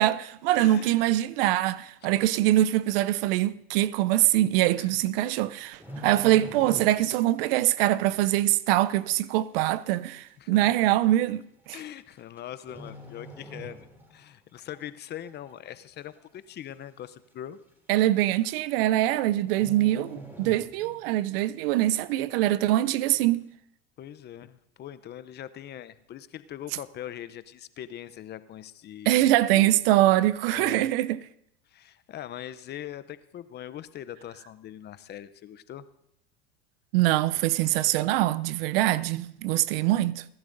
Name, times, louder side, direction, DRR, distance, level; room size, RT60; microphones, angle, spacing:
voice 1, 0.0-11.4 17.9-23.5 29.1-31.2 36.9-40.2, right 14 dB, 70° right, 0.6 m, -23 dB
voice 2, 0.5-1.1 4.8-4.9 10.4-10.9 11.7-17.6 24.0-29.8 30.5-30.9 31.7-35.9, left 11 dB, 35° left, 0.6 m, -42 dB
sound 1, 5.6-7.3 7.6-7.8 8.4-8.5 9.4-9.5 9.7-9.8 10.6-10.9 12.0-12.4 12.7-14.2 14.6-14.8 15.3-15.8 16.1-16.2 16.5-16.6 17.0-17.1 18.1-18.2 18.4-18.7 19.0-19.1 19.5-21.2 21.5-21.6, equal, 5° right, 2.9 m, -44 dB
29.0 x 12.0 x 2.6 m
hypercardioid pair, 100°, 31 cm